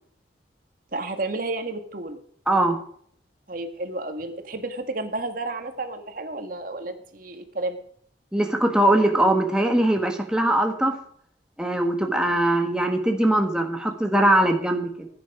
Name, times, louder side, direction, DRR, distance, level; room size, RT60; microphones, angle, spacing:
voice 1, 0.9-2.2 3.5-7.8, right 2 dB, 50° right, 6 dB, 1.8 m, -31 dB
voice 2, 2.5-2.8 8.3-11.0 11.6-15.1, right 1 dB, 5° right, 3 dB, 1.4 m, -21 dB
15.5 x 9.8 x 4.9 m, 0.62 s
head